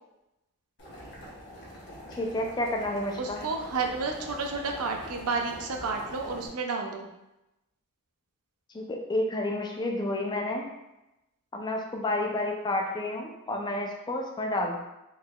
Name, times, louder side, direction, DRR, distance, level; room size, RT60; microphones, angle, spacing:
Boiling, 0.8-6.5, equal, 55° left, 1.0 m, -44 dB
voice 1, 2.2-3.4 8.7-10.6 11.5-14.8, left 1 dB, 20° left, 1 dB, 0.3 m, -30 dB
voice 2, 3.2-7.1, right 4 dB, 85° right, 2 dB, 0.5 m, -31 dB
3.8 x 2.9 x 2.2 m, 0.94 s
head